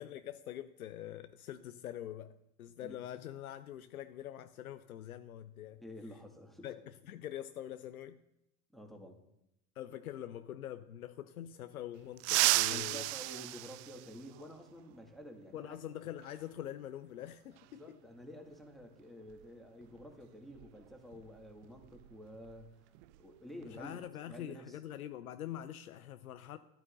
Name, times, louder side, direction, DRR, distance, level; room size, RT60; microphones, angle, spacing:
voice 1, 0.0-5.8 6.6-8.2 9.8-13.1 15.5-18.0 23.6-26.6, left 11 dB, 85° left, 0.5 m, -44 dB
voice 2, 5.8-6.7 8.7-9.2 12.7-15.9 17.8-22.9 23.2-24.8, equal, ahead, 1.8 m, -50 dB
sound 1, 12.2-14.6 16.2-16.3 17.6-17.7 19.3-19.4 19.8-20.0 20.5-22.7 22.9-23.2 23.6-24.1, right 20 dB, 55° right, 0.5 m, -34 dB
13.0 x 12.5 x 2.6 m
hypercardioid pair, 80°, 42 cm